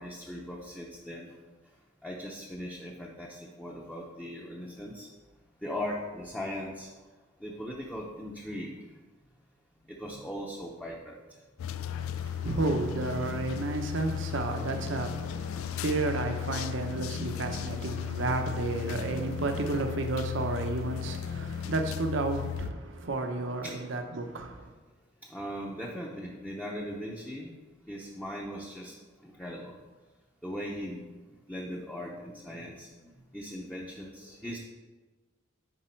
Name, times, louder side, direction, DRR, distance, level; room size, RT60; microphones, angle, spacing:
voice 1, 0.0-1.4 2.0-5.1 5.6-6.9 7.4-8.7 9.9-11.2 23.6-23.8 25.2-27.5 27.9-28.9 29.2-29.8 30.4-31.0 31.5-32.9 33.3-34.6, equal, 5° left, -3 dB, 0.7 m, -39 dB
sound 1, 11.6-22.7, left 8 dB, 90° left, 0.3 m, -35 dB
voice 2, 11.9-24.7, right 2 dB, 65° right, 5 dB, 0.8 m, -32 dB
10.0 x 4.3 x 4.4 m, 1.3 s
head